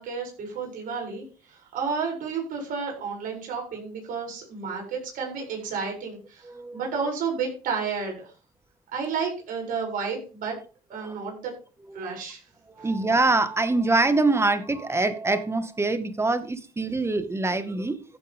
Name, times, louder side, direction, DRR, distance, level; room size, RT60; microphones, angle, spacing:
voice 1, 0.0-8.3 8.9-10.6 10.9-11.5 11.9-12.4 12.8-12.9, right 5 dB, 65° right, 7.6 m, -31 dB
voice 2, 6.4-6.9 11.0-11.2 11.9-12.1 12.8-18.0, right 3 dB, 15° right, 1.9 m, -25 dB
15.0 x 8.4 x 3.7 m
supercardioid pair, 80°, 15 cm